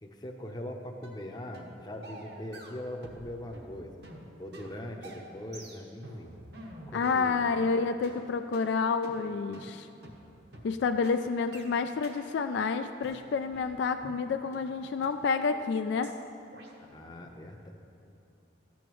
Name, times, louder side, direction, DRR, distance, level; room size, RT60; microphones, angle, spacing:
voice 1, 0.0-3.9 4.4-6.4 6.9-7.7 16.8-17.7, left 1 dB, 20° left, 2 dB, 0.7 m, -41 dB
sound 1, 1.0-1.2 1.5-1.7 2.0-3.3 3.5-7.7 8.0-8.2 8.5-8.7 9.0-9.2 9.5-9.7 10.0-10.2 10.5-10.7 11.0-11.2 11.5-11.7 12.0-12.2 12.5-12.7 13.0-14.2 14.5-14.6 15.0-15.1 15.5-15.7 16.0-16.2 16.5-16.7, right 1 dB, 55° right, 1.1 m, -47 dB
voice 2, 6.9-9.9 10.6-16.1, left 5 dB, 65° left, 8 dB, 0.3 m, -29 dB
13.5 x 8.5 x 3.1 m, 2.9 s
head